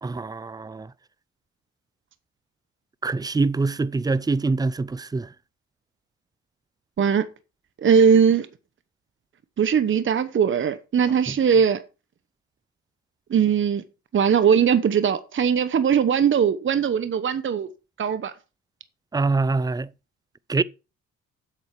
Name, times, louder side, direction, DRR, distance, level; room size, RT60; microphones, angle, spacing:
voice 1, 0.0-0.9 3.0-5.3 19.1-19.9 20.5-20.6, right 3 dB, 15° right, 0.5 m, -24 dB
voice 2, 7.0-7.3 7.8-8.5 9.6-11.8 13.3-13.8 14.1-17.7 18.0-18.3, right 7 dB, 40° right, 1.0 m, -20 dB
7.9 x 7.6 x 6.0 m
cardioid pair, 90°, 30 cm